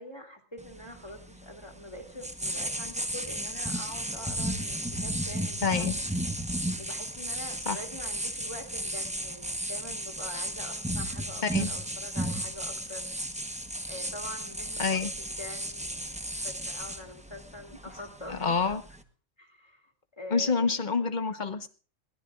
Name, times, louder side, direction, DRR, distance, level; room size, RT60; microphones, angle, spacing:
voice 1, 0.0-6.0 6.8-13.1 13.9-15.0 15.4-18.8 19.4-20.7, left 1 dB, 20° left, 2 dB, 2.4 m, -44 dB
sound 1, 0.6-19.0, right 1 dB, 5° right, 0.9 m, -34 dB
voice 2, 5.6-6.0 7.7-7.8 11.4-11.7 14.8-15.1 18.3-18.8 20.3-21.7, left 5 dB, 40° left, 9 dB, 1.2 m, -27 dB
21.5 x 16.5 x 2.5 m, 0.39 s
omnidirectional pair, 1.3 m